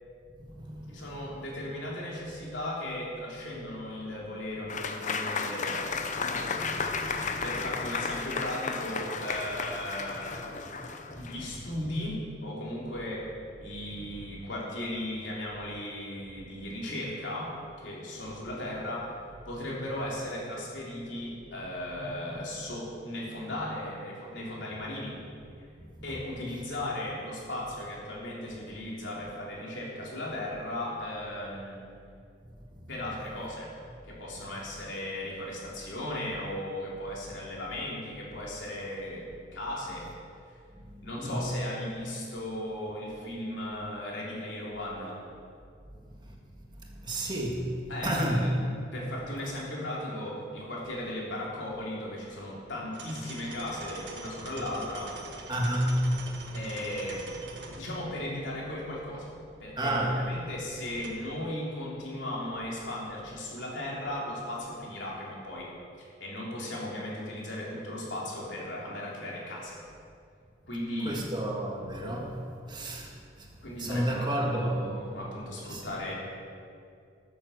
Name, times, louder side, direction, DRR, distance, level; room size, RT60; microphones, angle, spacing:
voice 1, 0.3-1.0 6.3-7.4 11.1-11.3 14.0-14.1 21.9-22.1 22.7-22.8 23.6-23.7 25.8-26.1 40.8-41.4 46.2-46.4 46.9-48.5 55.5-56.1 59.8-60.2 71.0-73.5 73.8-74.8 75.7-75.8, right 1 dB, 25° right, -1 dB, 1.7 m, -32 dB
voice 2, 0.9-5.8 7.4-10.5 11.2-13.2 13.6-17.5 17.8-19.1 19.5-25.2 26.0-31.8 32.9-33.7 34.1-39.3 39.5-40.1 41.0-45.2 47.9-48.6 48.9-55.1 56.5-57.3 57.8-59.3 59.6-65.7 66.0-69.8 70.7-71.2 73.6-76.1, left 1 dB, 75° left, -4 dB, 3.4 m, -36 dB
Applause / Crowd, 4.7-11.5, left 4 dB, 40° left, 0.7 m, -33 dB
sound 1, 52.9-61.1, right 3 dB, 65° right, 1.6 m, -45 dB
13.5 x 7.6 x 6.6 m, 2.4 s
head